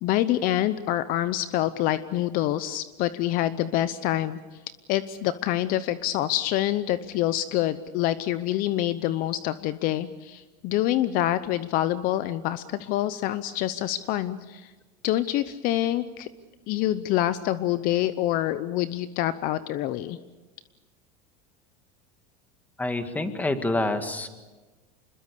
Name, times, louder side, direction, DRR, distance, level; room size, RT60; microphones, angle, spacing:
voice 1, 0.0-4.4 4.9-14.7 15.0-16.3 16.7-20.2, left 13 dB, 50° left, 14 dB, 0.8 m, -26 dB
voice 2, 22.8-24.3, left 2 dB, 10° left, 8 dB, 1.9 m, -27 dB
26.5 x 21.5 x 6.9 m, 1.2 s
supercardioid pair, 130°, 18 cm